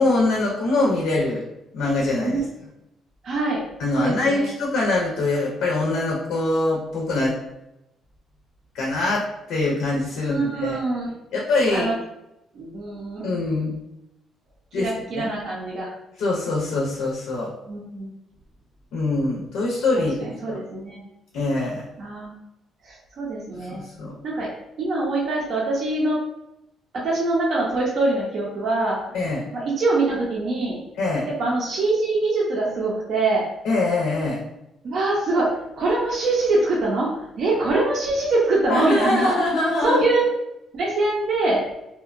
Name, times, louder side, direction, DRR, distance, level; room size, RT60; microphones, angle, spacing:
voice 1, 0.0-1.4 1.7-2.4 3.8-7.4 8.7-10.8 11.3-11.9 13.2-13.7 14.7-15.3 16.2-17.5 18.9-20.6 21.3-21.8 23.7-24.1 29.1-29.5 31.0-31.3 33.6-34.4 38.7-40.0, left 2 dB, 85° left, -2 dB, 0.5 m, -23 dB
voice 2, 3.2-3.6 3.9-4.5 10.2-11.1 11.7-11.9 12.5-13.3 14.7-15.9 17.6-18.1 19.9-21.0 22.0-22.3 22.8-23.8 24.2-24.5 24.8-26.2 26.9-29.0 29.5-30.8 31.2-33.4 34.8-39.3 39.8-40.3 40.7-41.6, right 2 dB, 55° right, -4 dB, 0.5 m, -24 dB
2.7 x 2.1 x 2.4 m, 0.88 s
cardioid pair, 125°, 0 cm